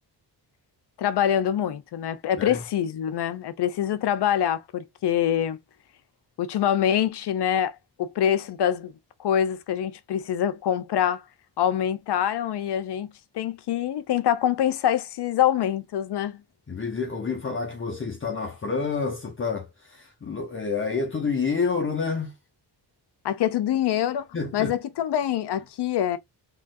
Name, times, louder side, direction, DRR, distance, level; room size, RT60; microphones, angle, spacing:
voice 1, 1.0-5.6 6.4-7.7 8.0-8.9 9.2-11.2 11.6-16.4 23.2-24.3 24.5-26.2, left 10 dB, 75° left, 0.7 m, -25 dB
voice 2, 16.7-22.4 24.3-24.7, left 5 dB, 30° left, 0.9 m, -28 dB
3.8 x 3.1 x 2.6 m
cardioid pair, 95°, 41 cm